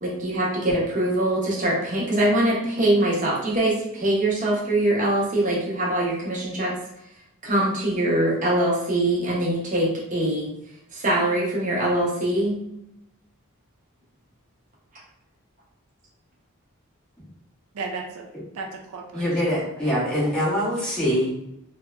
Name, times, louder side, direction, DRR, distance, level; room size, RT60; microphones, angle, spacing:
voice 1, 0.0-6.7 7.4-10.5 10.9-12.6, right 1 dB, 35° right, -4 dB, 0.7 m, -23 dB
voice 2, 17.7-20.0, right 4 dB, 80° right, 1 dB, 0.4 m, -36 dB
voice 3, 19.1-21.4, equal, 5° left, -7 dB, 0.6 m, -24 dB
2.7 x 2.1 x 2.3 m, 0.81 s
head